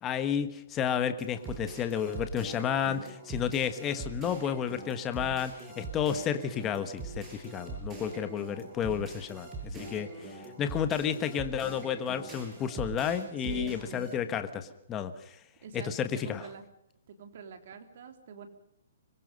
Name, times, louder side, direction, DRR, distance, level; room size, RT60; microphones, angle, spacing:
voice 1, 0.0-10.1 10.6-15.4 15.7-16.5, left 8 dB, 15° left, 10 dB, 1.3 m, -31 dB
sound 1, 1.2-14.1, right 3 dB, 15° right, 6.4 m, -42 dB
voice 2, 13.4-14.3 15.6-16.6 17.1-18.5, right 5 dB, 45° right, 6 dB, 3.6 m, -45 dB
25.5 x 21.5 x 5.4 m, 0.78 s
hypercardioid pair, 175°, 0 cm